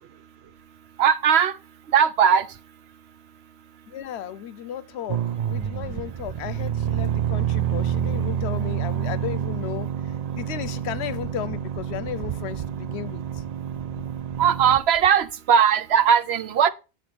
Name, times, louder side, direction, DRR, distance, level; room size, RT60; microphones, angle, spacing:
voice 1, 1.0-1.5 1.9-2.5 14.4-16.7, right 8 dB, 75° right, 1.0 m, -19 dB
voice 2, 3.9-5.2 5.5-9.9 10.3-13.2, left 10 dB, 90° left, 0.9 m, -34 dB
sound 1, 5.1-14.8, right 9 dB, 50° right, 0.5 m, -28 dB
8.5 x 4.4 x 6.2 m
omnidirectional pair, 1.1 m